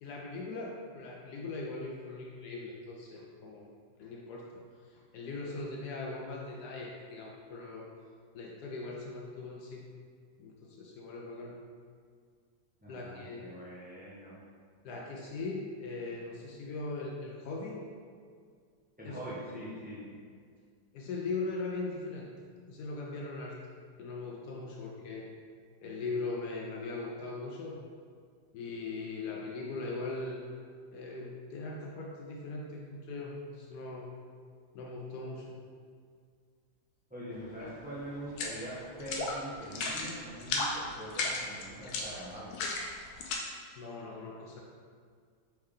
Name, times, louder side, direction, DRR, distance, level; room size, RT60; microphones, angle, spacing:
voice 1, 0.0-3.7 4.0-4.5 4.9-7.9 8.3-9.8 10.4-11.6 12.9-13.4 14.8-17.8 19.0-19.2 20.9-22.3 22.7-23.6 24.0-25.3 25.8-27.8 28.5-30.5 30.9-34.1 34.7-35.5 37.6-37.7 43.8-44.6, left 3 dB, 70° left, -2 dB, 1.0 m, -40 dB
voice 2, 12.8-14.4 19.0-20.1 37.1-42.6, right 1 dB, 15° right, -9 dB, 0.3 m, -43 dB
sound 1, 38.3-38.6 39.0-39.3 39.6-40.1 40.4-40.7 41.1-43.4, left 3 dB, 85° left, 1.4 m, -34 dB
4.3 x 3.4 x 3.6 m, 2.1 s
omnidirectional pair, 2.1 m